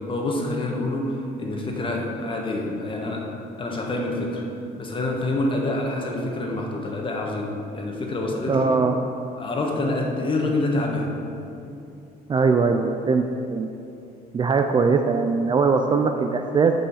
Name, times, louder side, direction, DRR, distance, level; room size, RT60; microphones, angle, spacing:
voice 1, 0.1-3.3 3.6-4.4 4.8-8.7 9.4-11.1, left 2 dB, 30° left, 0 dB, 1.4 m, -27 dB
voice 2, 8.5-9.0 12.3-13.2 13.5-13.7 14.3-16.7, right 4 dB, 25° right, 5 dB, 0.4 m, -20 dB
7.0 x 5.5 x 5.6 m, 2.7 s
cardioid pair, 110°, 17 cm